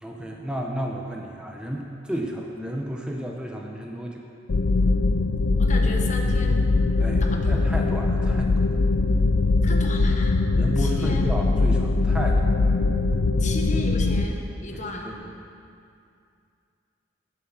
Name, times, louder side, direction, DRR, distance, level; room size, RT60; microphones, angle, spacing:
voice 1, 0.0-4.2 7.0-8.7 10.6-12.5 14.7-15.2, equal, 5° right, 0 dB, 0.7 m, -32 dB
sound 1, 4.5-14.3, left 3 dB, 80° left, 0.5 m, -21 dB
voice 2, 5.6-6.6 7.2-7.7 9.6-10.4 10.8-11.3 13.4-15.1, left 2 dB, 40° left, 2 dB, 1.1 m, -35 dB
11.0 x 7.2 x 6.2 m, 2.4 s
head